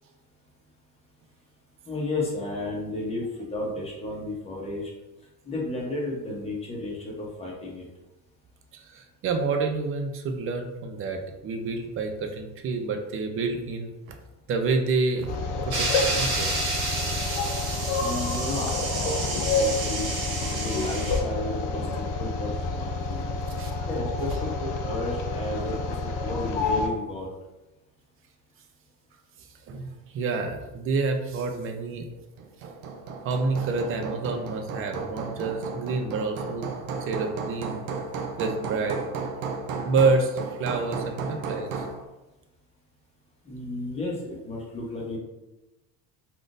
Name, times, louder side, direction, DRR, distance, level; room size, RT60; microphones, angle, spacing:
voice 1, 1.9-4.9 5.5-7.8 17.6-19.3 19.5-23.4 23.9-25.8 26.2-27.3 43.4-45.2, left 2 dB, 15° left, -4 dB, 0.8 m, -33 dB
voice 2, 8.7-14.2 14.5-15.4 15.7-16.6 23.6-23.8 29.7-32.0 33.2-37.8 38.4-39.0 39.8-41.8, right 4 dB, 35° right, 5 dB, 0.4 m, -28 dB
sound 1, 15.3-26.9, left 3 dB, 80° left, 0.6 m, -29 dB
sound 2, 15.7-21.2, right 2 dB, 65° right, 1.2 m, -30 dB
Hammer, 32.4-42.0, right 4 dB, 85° right, 0.6 m, -34 dB
3.5 x 2.5 x 2.5 m, 1.0 s
cardioid pair, 130°, 41 cm